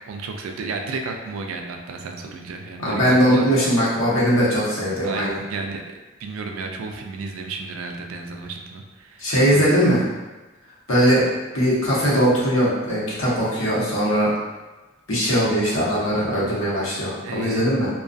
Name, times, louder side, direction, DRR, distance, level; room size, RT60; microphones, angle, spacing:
voice 1, 0.1-3.5 5.0-5.8 6.2-9.7 17.2-17.6, right 4 dB, 85° right, 3 dB, 0.3 m, -32 dB
voice 2, 2.8-5.4 9.2-10.0 10.9-11.3 11.5-14.3 15.1-17.9, equal, 70° left, -7 dB, 0.8 m, -20 dB
2.3 x 2.3 x 2.5 m, 1.1 s
head